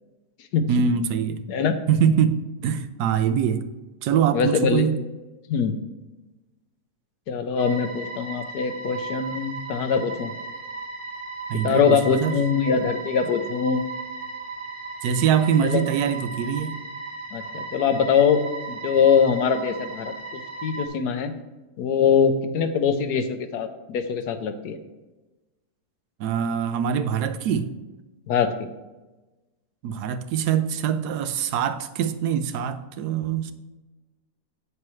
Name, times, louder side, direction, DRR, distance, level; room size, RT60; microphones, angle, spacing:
voice 1, 0.7-1.4 1.9-3.7 4.0-5.0 11.5-12.4 15.0-16.8 26.2-27.7 29.8-33.5, right 8 dB, 90° right, 1.2 m, -23 dB
voice 2, 1.5-1.8 4.3-4.9 5.5-5.8 7.3-10.3 11.6-13.8 15.6-15.8 17.3-18.4 18.8-21.3 21.8-24.8 28.3-28.7, left 6 dB, 85° left, 1.3 m, -22 dB
sound 1, 7.6-20.9, right 3 dB, 40° right, 1.4 m, -36 dB
8.9 x 6.5 x 3.1 m
omnidirectional pair, 1.7 m